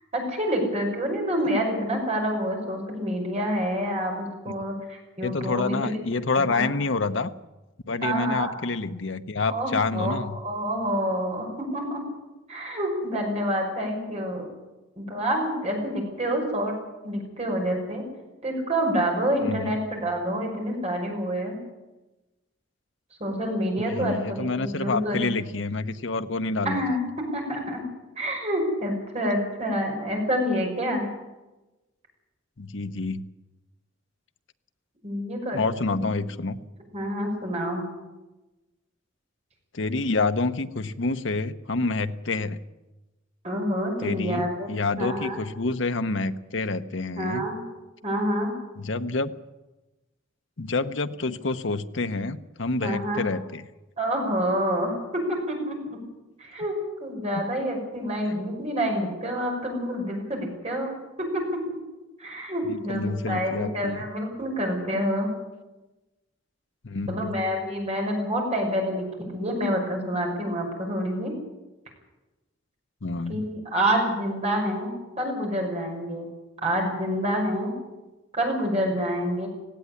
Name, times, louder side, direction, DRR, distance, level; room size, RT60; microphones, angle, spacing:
voice 1, 0.1-6.0 6.3-6.7 8.0-8.5 9.5-12.0 12.5-14.5 15.0-16.8 17.0-18.0 18.4-21.6 23.2-25.3 26.6-27.8 28.2-31.1 35.0-35.6 35.9-36.0 36.9-37.8 43.4-44.7 45.0-45.4 47.2-47.6 48.0-48.5 52.8-53.2 54.0-56.0 56.4-61.8 62.2-65.3 67.1-69.0 69.3-71.3 73.3-76.3 76.6-77.7 78.3-79.5, equal, 35° right, 1 dB, 5.9 m, -27 dB
voice 2, 5.2-7.3 7.9-10.4 19.5-19.7 23.8-26.8 32.6-33.2 35.5-36.6 39.7-42.6 44.0-47.5 48.8-49.3 50.6-53.6 57.3-57.4 62.7-64.0 66.8-67.4 73.0-73.4, left 3 dB, 70° left, 10 dB, 0.9 m, -28 dB
18.0 x 16.5 x 9.9 m, 1.1 s
head